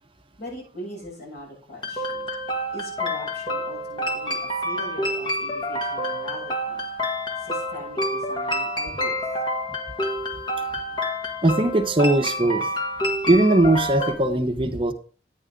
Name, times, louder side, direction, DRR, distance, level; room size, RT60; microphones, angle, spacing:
voice 1, 0.4-2.3 2.7-6.8 7.4-9.2, equal, 60° left, -3 dB, 6.8 m, -40 dB
sound 1, 1.8-14.2, equal, 25° left, 1.4 m, -28 dB
voice 2, 11.4-12.7 13.3-14.9, right 1 dB, 30° right, 5 dB, 0.8 m, -20 dB
10.0 x 9.6 x 3.7 m, 0.39 s
head